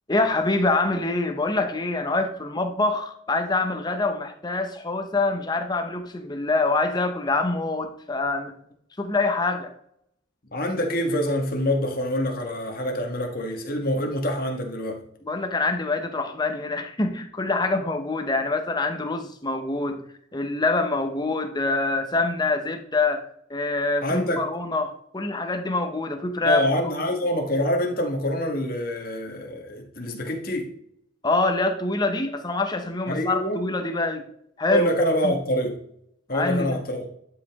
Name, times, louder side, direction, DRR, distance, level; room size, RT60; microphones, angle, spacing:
voice 1, 0.1-8.5 9.0-9.7 15.2-20.0 20.3-26.6 31.2-34.2 34.6-34.9 35.2-35.3 36.3-36.8, left 3 dB, 20° left, 0.8 m, -25 dB
voice 2, 10.5-15.0 24.0-24.4 26.4-30.7 33.1-33.6 34.7-35.8 36.3-37.1, left 1 dB, 45° left, 1.6 m, -26 dB
11.5 x 5.1 x 3.6 m
head